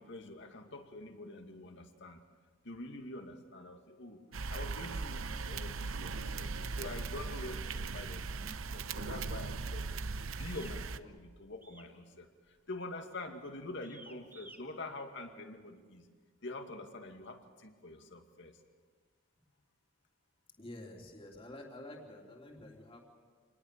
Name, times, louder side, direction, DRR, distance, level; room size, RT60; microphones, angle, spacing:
voice 1, 0.0-2.2 2.6-4.2 4.5-10.0 10.4-12.3 12.7-16.0 16.4-18.5, left 2 dB, 60° left, 5 dB, 2.3 m, -46 dB
sound 1, 4.3-11.0, right 4 dB, 75° right, 0.8 m, -39 dB
sound 2, 10.4-10.8 11.6-12.0 12.2-12.6 13.1-13.3 13.8-14.6, right 2 dB, 10° right, 2.0 m, -55 dB
voice 2, 20.6-23.0, left 1 dB, 25° left, 0 dB, 3.2 m, -49 dB
26.5 x 20.0 x 6.8 m, 1.5 s
head